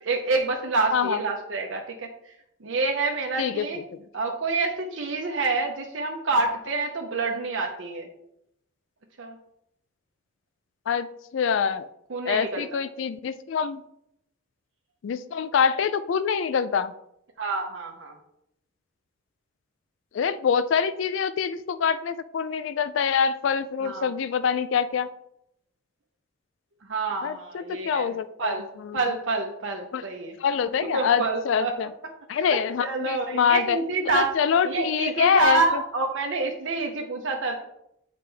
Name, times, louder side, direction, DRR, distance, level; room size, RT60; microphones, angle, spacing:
voice 1, 0.0-2.1 2.6-3.8 4.1-8.1 9.2-9.4 12.1-12.6 17.4-18.2 23.8-24.1 26.9-28.1 28.4-28.7 28.9-30.3 30.9-31.7 32.4-34.3 34.6-37.6, right 3 dB, 75° right, 2 dB, 0.7 m, -27 dB
voice 2, 11.3-11.9 12.3-13.8 15.0-16.9 20.1-25.1 27.2-29.0 29.9-30.0 30.4-31.9 32.3-33.8 34.1-35.8, left 6 dB, 70° left, 13 dB, 0.3 m, -25 dB
7.8 x 4.9 x 3.3 m, 0.78 s
head